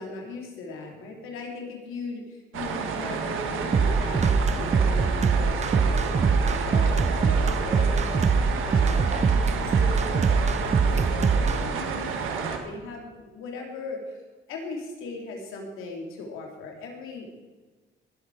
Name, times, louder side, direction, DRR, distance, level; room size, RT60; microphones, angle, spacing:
voice 1, 0.0-14.2 14.5-17.3, left 3 dB, 90° left, 1 dB, 3.0 m, -38 dB
sound 1, 2.5-12.6, right 6 dB, 85° right, 1.6 m, -31 dB
sound 2, 3.7-11.6, right 5 dB, 35° right, 0.7 m, -22 dB
19.5 x 8.4 x 4.8 m, 1.3 s
cardioid pair, 80°, 20 cm